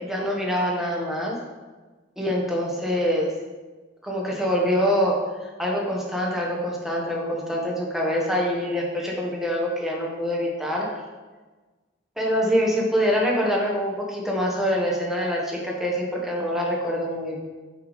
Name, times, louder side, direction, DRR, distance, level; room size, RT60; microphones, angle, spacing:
voice 1, 0.0-1.3 2.2-3.3 4.0-5.1 5.4-10.9 12.2-17.4, equal, ahead, -2 dB, 1.1 m, -25 dB
6.4 x 5.1 x 4.0 m, 1.3 s
head